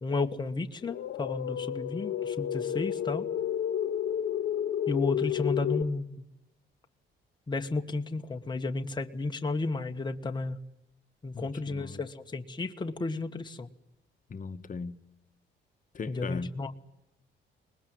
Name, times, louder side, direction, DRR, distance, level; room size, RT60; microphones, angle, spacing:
voice 1, 0.0-3.3 4.9-6.1 7.5-10.6 11.2-13.7 16.1-16.8, left 3 dB, 20° left, 1.5 m, -32 dB
sound 1, 0.8-5.8, left 10 dB, 65° left, 0.9 m, -31 dB
voice 2, 11.3-12.0 14.3-15.0 15.9-16.6, left 4 dB, 40° left, 1.4 m, -38 dB
23.0 x 20.5 x 9.4 m
cardioid pair, 90°, 20 cm